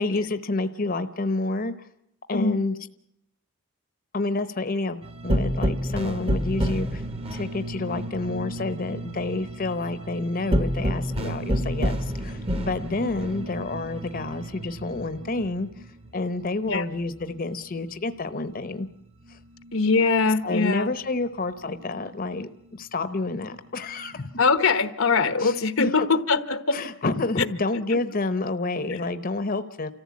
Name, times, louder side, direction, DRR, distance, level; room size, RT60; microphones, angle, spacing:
voice 1, 0.0-1.7 2.3-2.8 4.1-7.0 7.3-15.7 16.1-18.9 19.3-19.4 20.4-24.3 25.4-25.9 26.7-29.9, left 2 dB, 45° left, 11 dB, 0.9 m, -29 dB
sound 1, 5.0-18.0 18.3-20.2 20.5-22.2 22.7-24.5, equal, 30° right, 1.1 m, -31 dB
voice 2, 19.7-20.9 24.4-26.8 27.9-28.0, left 4 dB, 85° left, 12 dB, 1.1 m, -22 dB
29.0 x 14.5 x 8.5 m, 0.76 s
head